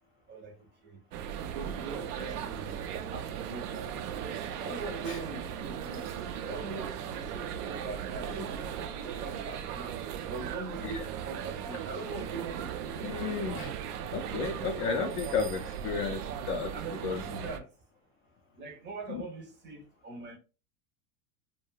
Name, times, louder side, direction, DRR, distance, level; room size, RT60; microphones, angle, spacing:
sound 1, 1.1-17.6, right 9 dB, 80° right, 0.5 m, -37 dB
voice 1, 1.4-2.7 3.1-6.1 6.4-10.0 10.3-13.8 16.7-17.7 18.6-20.4, right 3 dB, 25° right, 0.5 m, -42 dB
voice 2, 13.0-13.7 14.1-16.2 16.5-16.7 17.0-17.2 19.1-19.2, left 5 dB, 30° left, 0.4 m, -32 dB
2.2 x 2.2 x 3.0 m
hypercardioid pair, 110°, 45 cm